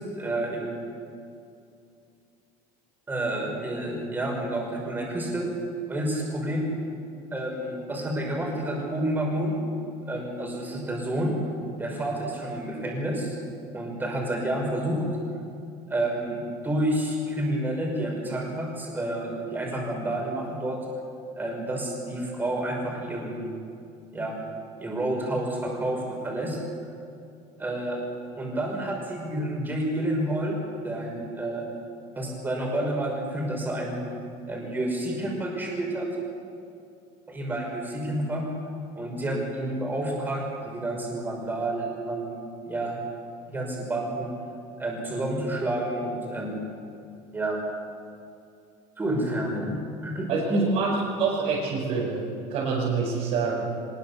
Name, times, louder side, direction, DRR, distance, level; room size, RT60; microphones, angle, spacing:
voice 1, 0.1-0.8 3.1-5.5 5.9-6.6 7.3-9.6 10.1-11.3 11.8-13.4 13.7-15.0 15.9-20.8 21.4-23.5 24.1-24.3 24.8-26.6 27.6-28.0 28.4-30.6 30.8-31.6 32.2-34.0 34.5-36.1 37.3-38.4 38.9-42.4 42.7-43.0 43.5-44.3 44.8-46.6 47.3-47.6 49.0-50.7, right 1 dB, 15° right, -1 dB, 5.6 m, -29 dB
voice 2, 50.3-52.2 52.5-53.7, right 5 dB, 55° right, -7 dB, 5.6 m, -27 dB
24.0 x 21.0 x 7.0 m, 2.4 s
cardioid pair, 170°, 15 cm